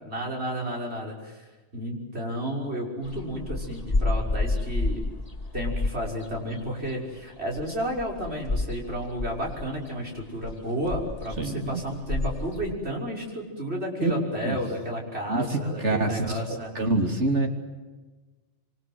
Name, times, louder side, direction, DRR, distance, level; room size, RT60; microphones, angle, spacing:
voice 1, 0.0-1.5 1.7-5.0 5.5-16.8, equal, 65° right, 0 dB, 6.5 m, -32 dB
sound 1, 3.0-12.7, left 2 dB, 35° left, 2.4 m, -30 dB
voice 2, 11.4-11.8 14.0-14.1 14.4-14.6 15.3-15.5 15.8-17.5, right 2 dB, 80° right, 4 dB, 3.4 m, -26 dB
27.0 x 25.0 x 7.8 m, 1.2 s
omnidirectional pair, 1.2 m